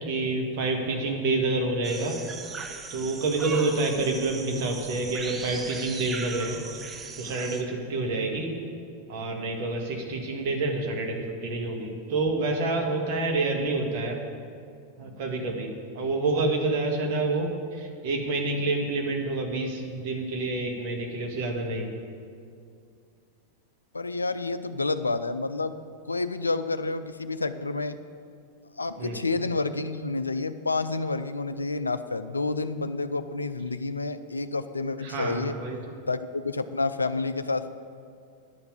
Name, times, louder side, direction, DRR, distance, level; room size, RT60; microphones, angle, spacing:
voice 1, 0.0-2.2 2.9-6.8 7.2-8.5 9.1-14.2 15.0-21.9 29.0-29.2 35.0-35.8, right 2 dB, 45° right, 2 dB, 1.7 m, -28 dB
sound 1, 1.8-7.6, right 4 dB, 20° right, 0.7 m, -38 dB
voice 2, 23.9-25.8 26.1-28.0 28.8-35.6 36.1-37.7, left 3 dB, 80° left, 11 dB, 0.4 m, -29 dB
10.5 x 5.9 x 8.6 m, 2.3 s
figure-of-eight pair, 90°, 0 cm